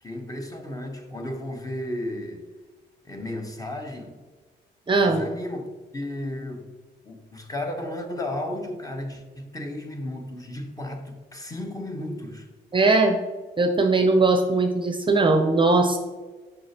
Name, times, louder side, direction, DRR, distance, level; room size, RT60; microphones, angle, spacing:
voice 1, 0.0-2.4 3.0-4.2 5.0-6.7 7.0-12.5, left 1 dB, 20° left, 3 dB, 1.0 m, -34 dB
voice 2, 4.9-5.2 12.7-13.2 13.6-16.0, right 3 dB, 25° right, 5 dB, 0.6 m, -20 dB
6.4 x 5.7 x 2.9 m, 1.3 s
cardioid pair, 90°, 20 cm